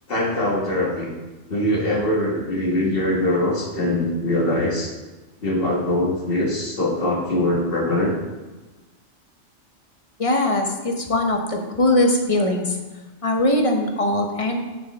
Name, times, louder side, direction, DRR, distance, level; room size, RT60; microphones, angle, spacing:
voice 1, 0.1-1.1 1.5-4.9 5.4-8.1, left 1 dB, 50° left, -2 dB, 1.7 m, -22 dB
voice 2, 10.2-12.8 13.2-14.6, left 1 dB, 30° left, 2 dB, 0.9 m, -21 dB
8.8 x 5.8 x 3.5 m, 1.2 s
omnidirectional pair, 1.3 m